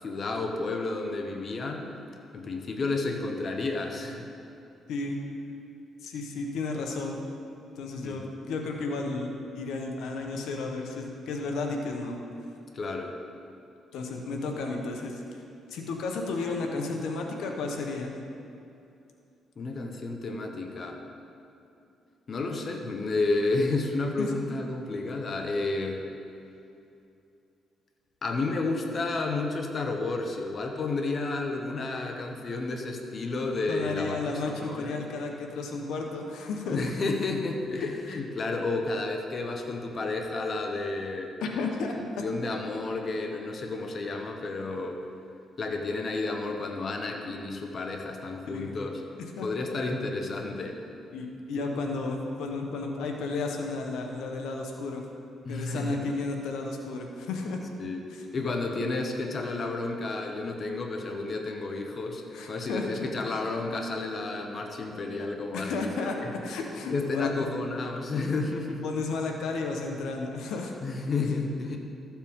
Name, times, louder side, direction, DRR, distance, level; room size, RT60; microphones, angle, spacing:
voice 1, 0.0-1.9 2.3-4.3 8.0-8.2 12.7-13.2 19.6-21.0 22.3-26.0 28.2-34.2 34.4-35.0 36.7-41.3 42.2-45.0 45.6-49.0 49.4-50.8 55.4-56.1 57.8-62.2 62.5-66.3 66.9-68.8 70.8-71.8, left 3 dB, 45° left, 3 dB, 1.0 m, -31 dB
voice 2, 6.0-7.2 7.8-12.2 13.9-15.4 15.7-18.1 24.2-24.3 33.7-36.8 38.1-38.2 41.4-42.3 48.4-48.7 49.2-49.5 51.1-55.0 55.5-57.6 58.1-58.3 62.3-62.9 65.5-66.2 66.4-67.5 68.8-70.7, left 3 dB, 80° left, 2 dB, 1.0 m, -33 dB
13.5 x 7.3 x 3.7 m, 2.6 s
cardioid pair, 90°, 0 cm